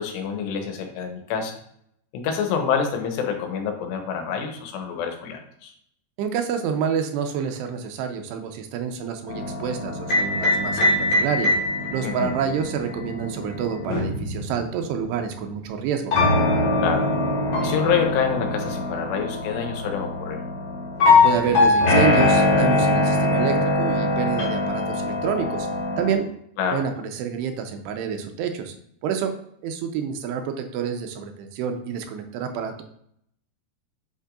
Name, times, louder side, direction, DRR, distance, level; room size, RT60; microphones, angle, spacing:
voice 1, 0.0-1.6 2.1-5.7 12.0-12.3 16.8-17.1 17.6-20.4 26.6-26.8, left 7 dB, 90° left, 4 dB, 3.0 m, -27 dB
voice 2, 6.2-11.5 11.9-16.1 21.2-25.7 26.0-26.3 26.7-28.7 29.0-29.3 29.6-32.8, right 7 dB, 85° right, 5 dB, 2.8 m, -28 dB
sound 1, 9.3-15.2 16.1-26.1, left 2 dB, 50° left, 2.5 m, -22 dB
8.1 x 5.9 x 2.5 m, 0.69 s
omnidirectional pair, 4.8 m